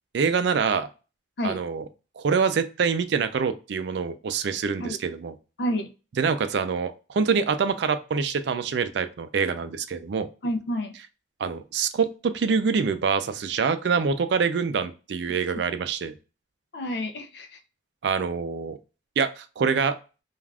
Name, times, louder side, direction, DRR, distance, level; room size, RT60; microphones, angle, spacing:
voice 1, 0.1-0.9 1.4-1.8 2.2-5.3 6.2-10.3 11.4-16.1 18.0-18.8 19.2-20.0, right 5 dB, 65° right, 0.4 m, -25 dB
voice 2, 5.6-5.9 10.4-10.9 15.3-15.4 16.7-17.6, equal, 60° left, 0.5 m, -29 dB
3.3 x 2.4 x 2.2 m
head